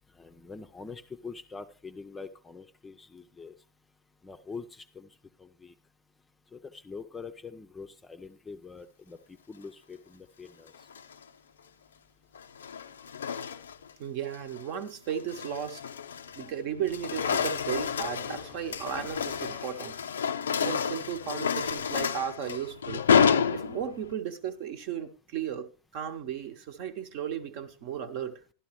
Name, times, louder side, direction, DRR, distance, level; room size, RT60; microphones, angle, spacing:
voice 1, 0.2-3.5 4.2-5.1 5.4-5.7 6.5-9.2 9.5-10.7, left 4 dB, 15° left, 0.6 m, -44 dB
sound 1, 10.7-11.2 12.3-13.9 14.3-14.6 15.1-16.5 16.8-24.1, left 7 dB, 65° left, 0.4 m, -29 dB
voice 2, 14.0-15.8 16.4-20.0 20.6-23.0 23.5-28.4, right 8 dB, 45° right, 1.0 m, -35 dB
sound 2, 17.1-20.3, right 3 dB, 20° right, 1.0 m, -54 dB
12.5 x 12.0 x 3.1 m
figure-of-eight pair, 90°, 0 cm